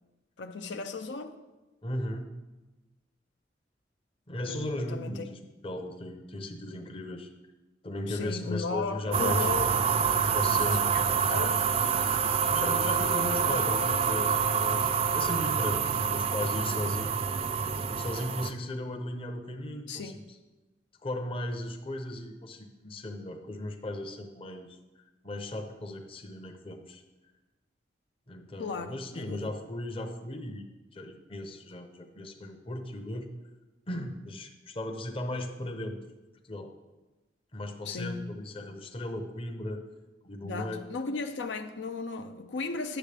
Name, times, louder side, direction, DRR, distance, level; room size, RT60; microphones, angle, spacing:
voice 1, 0.4-1.4 4.5-5.2 8.1-9.7 10.5-11.7 19.9-20.2 28.6-29.5 37.8-38.3 40.4-43.0, left 4 dB, 85° left, 6 dB, 0.5 m, -36 dB
voice 2, 1.8-2.3 4.3-7.3 7.8-9.7 10.3-10.8 12.4-17.2 17.9-20.2 21.0-27.0 28.3-33.3 33.9-36.0 36.4-36.7 37.5-39.8 40.2-40.8, left 1 dB, 30° left, 5 dB, 0.7 m, -37 dB
sound 1, 9.1-18.5, right 6 dB, 35° right, 0.3 m, -27 dB
9.9 x 7.2 x 3.4 m, 1.1 s
head